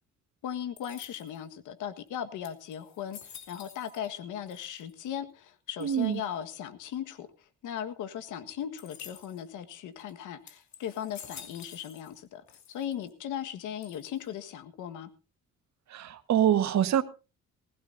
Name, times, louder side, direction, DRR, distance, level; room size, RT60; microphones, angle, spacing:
voice 1, 0.4-7.3 7.6-15.1, left 9 dB, 85° left, 1.6 m, -38 dB
sound 1, 0.8-1.5 2.1-2.2 2.4-4.2 4.5-5.1 5.8-6.2 8.8-9.5 10.0-10.1 10.5-12.2 12.5-13.1 13.8-14.4, left 8 dB, 65° left, 2.7 m, -50 dB
voice 2, 5.8-6.2 15.9-17.0, right 10 dB, 65° right, 1.5 m, -25 dB
20.0 x 16.0 x 2.7 m
cardioid pair, 90°, 30 cm